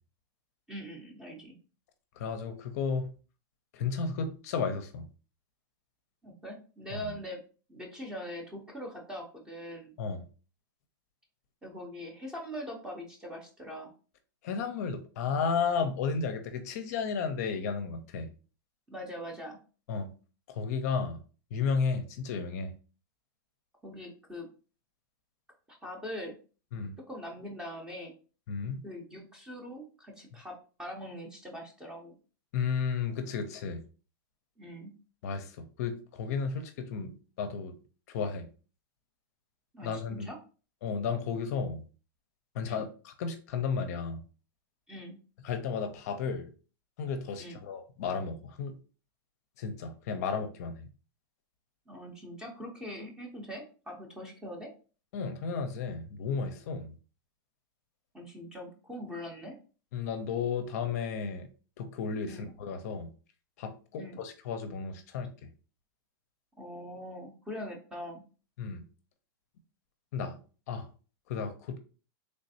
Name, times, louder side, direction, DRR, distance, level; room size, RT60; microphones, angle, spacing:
voice 1, 0.7-1.5 6.2-7.4 7.7-9.9 11.6-13.9 18.9-19.6 23.8-24.5 25.7-26.3 27.1-28.1 28.8-32.1 34.6-34.9 39.7-40.4 42.6-42.8 44.9-45.2 47.4-47.6 51.9-54.7 58.1-59.6 62.3-62.5 64.0-64.2 66.6-68.2, equal, 5° right, 0 dB, 0.5 m, -42 dB
voice 2, 2.2-3.1 3.7-5.1 6.9-7.1 10.0-10.2 14.4-18.3 19.9-20.1 20.5-21.2 21.5-22.7 26.7-26.9 28.5-28.8 32.5-33.8 35.2-37.1 37.4-37.7 38.1-38.5 39.8-40.3 40.8-41.8 42.5-44.2 45.4-46.5 47.0-48.7 49.6-50.9 55.1-56.9 59.9-61.5 61.8-63.1 63.6-65.3 68.6-68.8 70.1-70.4 70.7-70.9 71.3-71.8, left 5 dB, 45° left, 7 dB, 0.5 m, -33 dB
3.3 x 3.1 x 2.7 m, 0.37 s
supercardioid pair, 160°, 12 cm